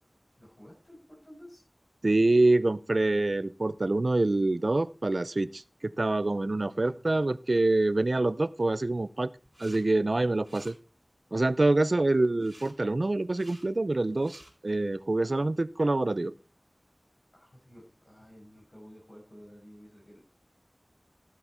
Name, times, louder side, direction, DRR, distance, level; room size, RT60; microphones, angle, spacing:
voice 1, 0.3-1.6 6.6-7.3 17.3-20.3, equal, 80° left, -4 dB, 6.0 m, -52 dB
voice 2, 2.0-9.3 9.6-10.8 11.3-16.3, right 2 dB, 80° right, 18 dB, 0.5 m, -26 dB
sound 1, 9.4-9.8 10.1-10.7 12.4-12.7 13.2-13.6 14.1-14.5, right 1 dB, 30° right, 4.3 m, -53 dB
14.0 x 8.0 x 4.4 m, 0.34 s
wide cardioid pair, 40°, 0 cm